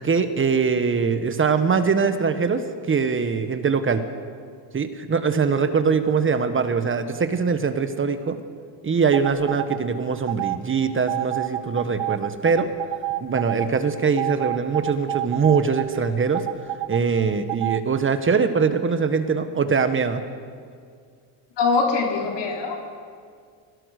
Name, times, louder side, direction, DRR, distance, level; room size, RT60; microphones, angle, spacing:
voice 1, 0.0-4.0 4.7-8.4 8.8-12.7 13.2-16.4 16.9-20.2, right 5 dB, 25° right, 9 dB, 1.4 m, -22 dB
sound 1, 9.1-9.8 10.3-10.6 11.1-13.7 14.2-15.9 16.3-17.0 17.5-17.8, right 16 dB, 70° right, 1.7 m, -28 dB
voice 2, 21.6-22.8, left 4 dB, 55° left, 0 dB, 4.3 m, -22 dB
24.0 x 18.0 x 6.7 m, 2.1 s
cardioid pair, 115°, 48 cm